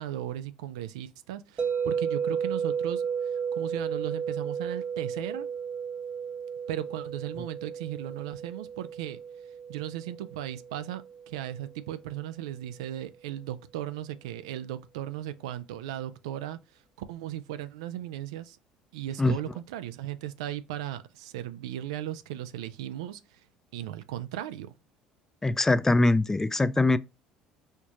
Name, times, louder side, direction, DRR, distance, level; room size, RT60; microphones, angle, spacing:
voice 1, 0.0-3.0 3.5-5.5 6.7-9.2 9.7-16.6 17.1-18.6 18.9-23.4 23.7-24.7, right 12 dB, 90° right, 0.4 m, -36 dB
sound 1, 1.6-11.7, right 7 dB, 35° right, 0.6 m, -33 dB
voice 2, 25.4-27.0, left 2 dB, 15° left, 0.3 m, -22 dB
4.4 x 2.4 x 2.9 m
supercardioid pair, 80°, 3 cm